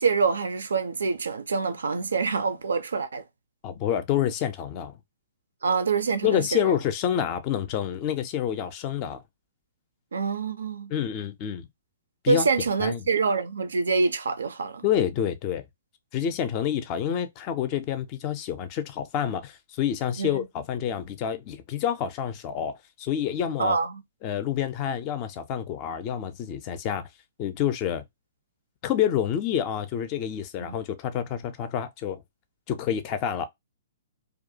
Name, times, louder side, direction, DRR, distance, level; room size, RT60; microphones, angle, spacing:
voice 1, 0.0-3.2 5.6-6.7 10.1-10.9 12.3-14.8 20.2-20.4 23.6-24.0 30.6-30.7, right 4 dB, 65° right, 0.3 m, -26 dB
voice 2, 3.6-5.0 6.2-9.2 10.9-11.7 12.2-12.5 12.8-13.1 14.8-15.6 16.1-23.8 24.2-27.1 27.4-28.0 28.8-32.2 32.7-33.5, left 9 dB, 30° left, 0.4 m, -28 dB
2.3 x 2.1 x 2.6 m
figure-of-eight pair, 115°, 0 cm